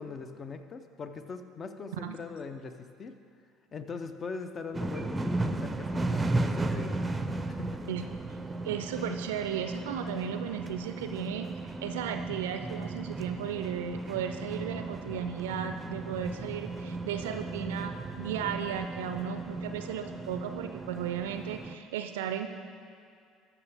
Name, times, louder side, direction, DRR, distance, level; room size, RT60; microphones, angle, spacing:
voice 1, 0.0-3.1 3.7-7.0 7.5-7.8, left 4 dB, 35° left, 9 dB, 0.6 m, -41 dB
sound 1, 4.7-21.7, right 2 dB, 15° right, 0.5 m, -35 dB
voice 2, 8.6-11.5 11.8-22.5, right 9 dB, 75° right, 8 dB, 0.4 m, -35 dB
13.5 x 6.0 x 3.4 m, 2.3 s
hypercardioid pair, 65°, 0 cm